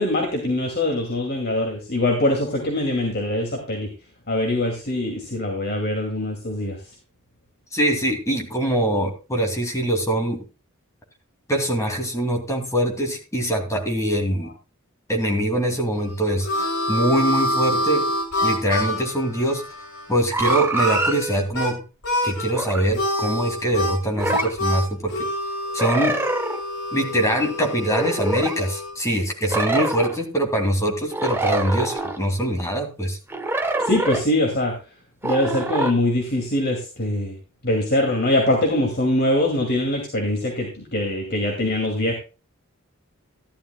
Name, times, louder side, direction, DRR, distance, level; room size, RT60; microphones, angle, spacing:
voice 1, 0.0-3.9 4.3-6.8 33.8-34.7 35.2-37.3 37.6-42.1, left 1 dB, 45° left, 0 dB, 2.5 m, -23 dB
voice 2, 7.7-10.4 11.5-14.5 15.1-18.1 18.4-19.6 20.1-21.8 22.2-25.3 25.7-26.2 26.9-33.2, right 1 dB, 15° left, 2 dB, 2.5 m, -23 dB
Harmonica, 15.9-21.7 22.0-22.5 22.9-28.9, left 1 dB, 85° left, 3.6 m, -27 dB
sound 1, 20.3-21.2 22.5-22.8 24.2-24.5 25.8-26.6 27.9-28.5 29.5-30.2 31.1-32.2 33.3-34.2 35.2-35.9, right 2 dB, 10° right, 1.1 m, -25 dB
14.5 x 11.5 x 2.3 m, 0.33 s
head